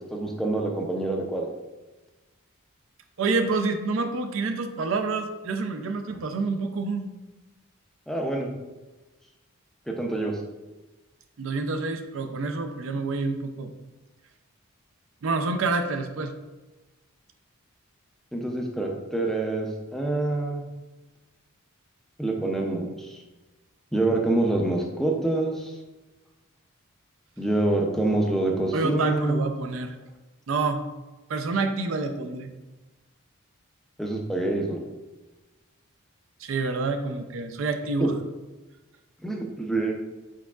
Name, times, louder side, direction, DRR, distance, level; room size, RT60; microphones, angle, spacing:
voice 1, 0.0-1.5 8.1-8.5 9.9-10.4 18.3-20.6 22.2-23.2 23.9-25.8 27.4-29.5 34.0-34.8 38.0-38.1 39.2-39.9, right 2 dB, ahead, 1 dB, 0.4 m, -26 dB
voice 2, 3.2-7.1 11.4-13.7 15.2-16.3 28.7-30.0 30.5-30.8 31.3-32.5 36.4-38.1, right 3 dB, 60° right, 7 dB, 0.4 m, -27 dB
4.6 x 4.6 x 2.3 m, 1.2 s
head